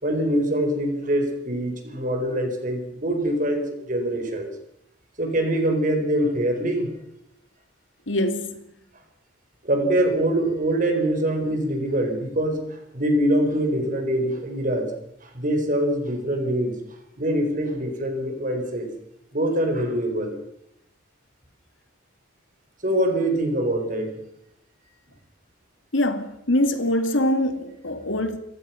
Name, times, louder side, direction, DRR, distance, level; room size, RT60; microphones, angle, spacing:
voice 1, 0.0-4.5 5.2-6.9 9.6-14.9 15.2-16.7 17.2-18.9 19.3-20.4 22.8-24.1, right 1 dB, 45° right, 4.7 m, -24 dB
voice 2, 8.1-8.6 25.9-28.4, left 1 dB, 85° left, 2.5 m, -23 dB
29.0 x 15.5 x 5.9 m
head